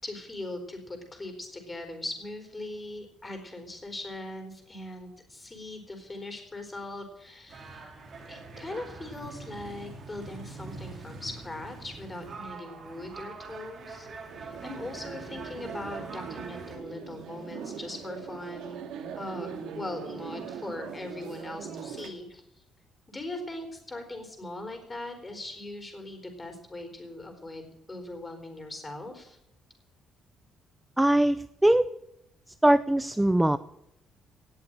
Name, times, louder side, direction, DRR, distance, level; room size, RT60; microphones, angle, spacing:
voice 1, 0.0-7.9 8.3-14.1 14.4-18.9 19.1-22.4 23.1-29.4, left 2 dB, 20° left, 5 dB, 4.2 m, -40 dB
sound 1, 7.5-16.8, right 4 dB, 45° right, 3.9 m, -44 dB
sound 2, 14.3-22.1, right 7 dB, 80° right, 2.1 m, -41 dB
voice 2, 31.0-31.9 32.6-33.6, right 1 dB, 5° right, 13 dB, 0.5 m, -21 dB
18.5 x 7.1 x 8.9 m, 0.80 s
cardioid pair, 115°, 0 cm